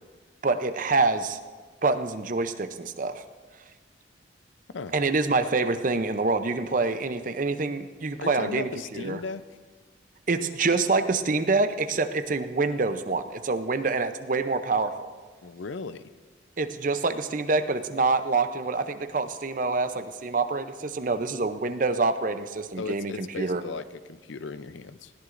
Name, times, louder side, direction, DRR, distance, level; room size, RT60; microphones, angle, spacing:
voice 1, 0.4-1.4 1.8-3.2 4.9-9.2 10.3-15.1 16.6-23.6, right 3 dB, 45° right, 9 dB, 0.6 m, -26 dB
voice 2, 8.2-9.5 15.4-16.1 22.8-25.1, left 4 dB, 85° left, 13 dB, 0.6 m, -36 dB
20.5 x 17.0 x 2.6 m, 1.4 s
head